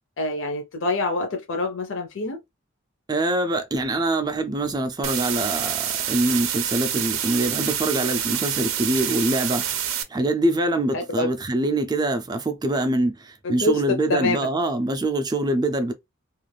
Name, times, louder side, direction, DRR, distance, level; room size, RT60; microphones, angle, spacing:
voice 1, 0.2-2.4 10.9-11.3 13.6-13.7 14.1-14.4, left 2 dB, 65° left, 0.5 m, -25 dB
voice 2, 3.1-15.9, right 1 dB, 20° right, 0.4 m, -24 dB
sound 1, 5.0-10.0, right 10 dB, 80° right, 0.5 m, -27 dB
2.4 x 2.3 x 3.2 m
head